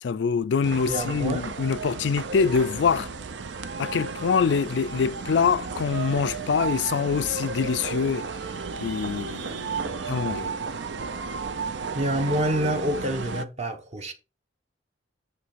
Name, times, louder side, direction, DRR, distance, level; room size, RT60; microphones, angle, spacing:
voice 1, 0.0-3.1 3.8-8.3 8.8-10.5, left 6 dB, 75° left, 0.4 m, -25 dB
sound 1, 0.6-13.5, right 4 dB, 80° right, 0.6 m, -33 dB
voice 2, 0.9-1.4 3.8-3.9 11.9-14.1, equal, 40° right, 0.9 m, -27 dB
9.6 x 3.2 x 5.6 m
head